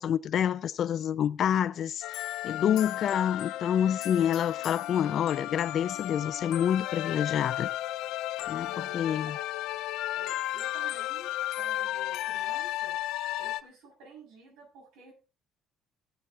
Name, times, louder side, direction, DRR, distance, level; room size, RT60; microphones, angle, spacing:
voice 1, 0.0-2.0 2.4-7.7 8.5-9.4, left 9 dB, 50° left, 0.5 m, -27 dB
sound 1, 2.0-13.6, left 15 dB, 85° left, 0.8 m, -34 dB
voice 2, 8.6-9.5 10.1-13.0 13.4-15.1, right 2 dB, 90° right, 7.0 m, -51 dB
17.5 x 8.1 x 3.7 m
cardioid pair, 140°, 0 cm